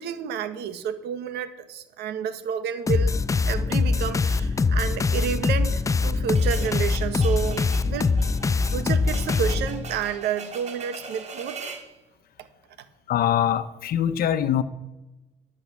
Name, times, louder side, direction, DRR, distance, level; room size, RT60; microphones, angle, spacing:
voice 1, 0.0-3.1 3.5-8.1 8.5-11.6, right 8 dB, 75° right, 11 dB, 1.5 m, -30 dB
sound 1, 2.9-10.0, left 4 dB, 20° left, 0.4 m, -23 dB
sound 2, 6.4-11.9, right 5 dB, 40° right, 2.4 m, -41 dB
voice 2, 13.1-14.6, left 10 dB, 60° left, 12 dB, 1.0 m, -23 dB
12.0 x 7.8 x 7.4 m, 1.0 s
cardioid pair, 110°, 17 cm